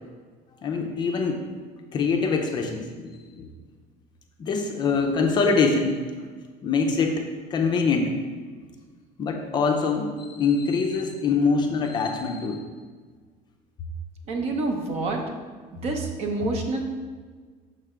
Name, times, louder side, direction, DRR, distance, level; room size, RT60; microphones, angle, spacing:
voice 1, 0.6-1.4 1.9-3.5 4.4-5.9 6.6-7.2 7.5-8.1 9.2-12.6, left 4 dB, 30° left, 3 dB, 0.5 m, -24 dB
voice 2, 14.3-15.3 15.7-16.8, right 2 dB, 45° right, 3 dB, 0.7 m, -27 dB
6.4 x 3.3 x 4.9 m, 1.5 s
cardioid pair, 180°, 15 cm